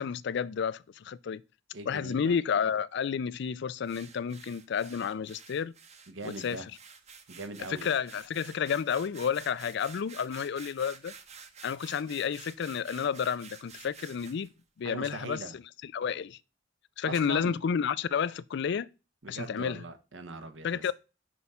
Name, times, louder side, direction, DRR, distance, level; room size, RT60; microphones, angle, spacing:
voice 1, 0.0-1.4 1.9-5.7 6.2-6.6 7.7-11.1 11.6-14.5 14.8-15.4 15.9-16.4 17.0-18.9 19.3-19.8 20.6-20.9, left 7 dB, 65° left, 0.4 m, -31 dB
voice 2, 1.7-2.3 6.1-6.7 7.3-7.9 14.8-15.5 17.0-17.6 19.2-20.9, right 2 dB, 80° right, 1.1 m, -41 dB
sound 1, 3.9-14.5, right 6 dB, 35° right, 0.9 m, -50 dB
6.1 x 4.8 x 5.5 m
head